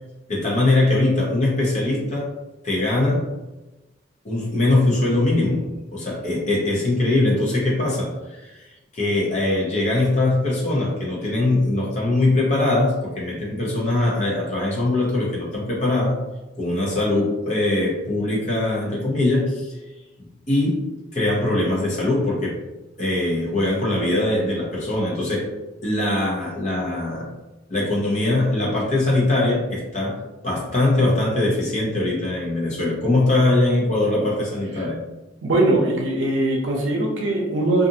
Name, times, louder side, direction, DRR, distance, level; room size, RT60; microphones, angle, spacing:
voice 1, 0.3-2.3 2.6-3.3 4.2-16.2 16.6-19.8 20.5-20.9 21.1-22.6 23.0-25.5 25.8-27.3 27.7-35.0, left 2 dB, 40° left, -4 dB, 0.8 m, -22 dB
voice 2, 35.4-37.9, right 2 dB, 75° right, -1 dB, 0.6 m, -21 dB
2.5 x 2.5 x 2.7 m, 1.1 s
head